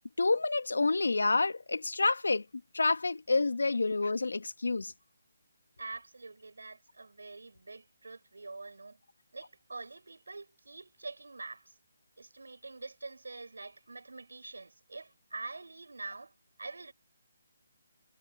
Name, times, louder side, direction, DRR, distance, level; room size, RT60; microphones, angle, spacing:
voice 1, 0.2-2.4 2.7-4.9, left 3 dB, 85° left, 2.0 m, -28 dB
voice 2, 5.8-9.0 9.3-11.8 12.2-16.9, right 3 dB, 85° right, 5.8 m, -45 dB
figure-of-eight pair, 155°, 0 cm